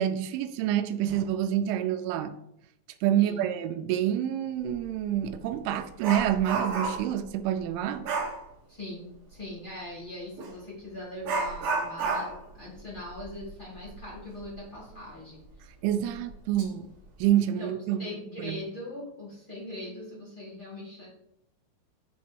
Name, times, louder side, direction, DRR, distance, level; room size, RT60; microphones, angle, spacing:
voice 1, 0.0-2.3 3.0-8.1 15.8-16.9 17.2-18.1 18.4-18.6, right 11 dB, 85° right, 10 dB, 2.9 m, -27 dB
voice 2, 3.2-3.5 8.7-12.3 12.6-15.4 17.4-21.1, left 1 dB, 40° left, -7 dB, 0.7 m, -41 dB
Dog, 4.7-4.8 5.3-7.2 8.0-8.4 10.4-10.5 11.2-14.5 14.8-14.9 15.5-15.6 16.2-16.6 17.0-17.3, right 3 dB, 65° right, 2.1 m, -32 dB
8.3 x 3.8 x 4.4 m, 0.77 s
omnidirectional pair, 5.5 m